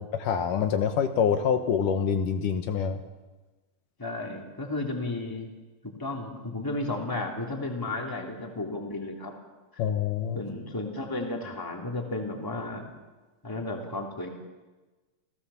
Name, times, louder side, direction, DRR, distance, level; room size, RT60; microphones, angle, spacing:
voice 1, 0.0-3.0 9.8-10.4, left 7 dB, 75° left, 7 dB, 2.7 m, -26 dB
voice 2, 4.0-5.5 5.8-9.3 9.7-9.8 10.3-12.9 13.4-14.3, left 2 dB, 5° left, 1 dB, 2.7 m, -33 dB
30.0 x 17.5 x 7.1 m, 1.2 s
omnidirectional pair, 4.0 m